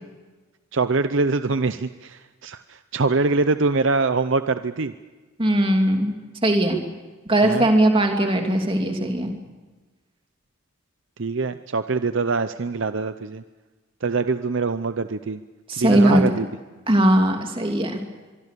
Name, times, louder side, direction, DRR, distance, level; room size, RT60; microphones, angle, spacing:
voice 1, 0.7-4.9 7.4-7.7 11.2-13.4 14.0-15.4 15.8-16.5, right 3 dB, 60° right, 11 dB, 0.7 m, -24 dB
voice 2, 5.4-6.2 6.4-6.8 7.3-9.3 15.7-16.3 16.9-18.0, right 1 dB, 25° right, 3 dB, 2.9 m, -19 dB
24.5 x 23.5 x 6.8 m, 1.3 s
head